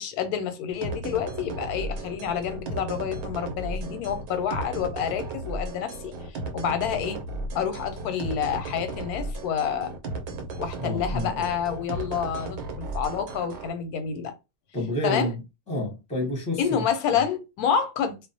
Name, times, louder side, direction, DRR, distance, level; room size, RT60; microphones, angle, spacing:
voice 1, 0.0-6.1 6.5-7.2 7.5-9.9 10.6-14.3 15.0-15.3 16.6-18.2, left 7 dB, 90° left, 1.1 m, -28 dB
sound 1, 0.8-13.7, right 2 dB, 80° right, 1.1 m, -35 dB
voice 2, 10.8-11.5 14.7-15.4 15.7-16.8 17.1-17.2, left 1 dB, 5° left, 0.6 m, -29 dB
2.5 x 2.0 x 2.6 m
omnidirectional pair, 1.6 m